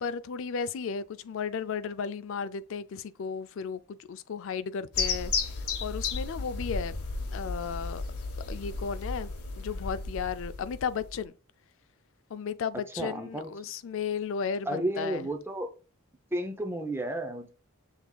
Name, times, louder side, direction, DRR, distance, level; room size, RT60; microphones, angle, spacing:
voice 1, 0.0-5.6 5.8-7.0 7.3-8.0 8.5-11.3 12.3-15.3, left 6 dB, 60° left, 0.3 m, -34 dB
sound 1, 4.9-11.2, left 4 dB, 80° left, 0.9 m, -34 dB
voice 2, 13.0-13.5 14.7-15.7 16.3-17.5, right 1 dB, 10° right, 0.5 m, -32 dB
6.5 x 3.4 x 2.2 m
head